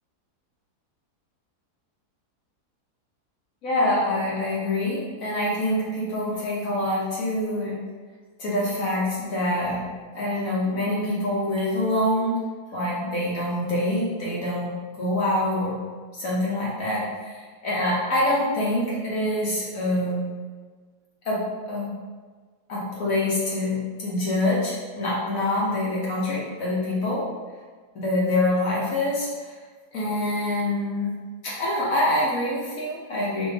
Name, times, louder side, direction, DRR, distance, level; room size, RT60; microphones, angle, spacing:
voice 1, 3.6-7.8 8.4-9.8 10.1-12.4 12.7-14.7 15.0-15.7 16.1-20.2 21.2-21.9 22.7-27.3 28.0-29.3 29.9-31.1 31.4-33.5, left 1 dB, 60° left, -6 dB, 1.2 m, -25 dB
4.1 x 2.5 x 3.3 m, 1.5 s
omnidirectional pair, 1.7 m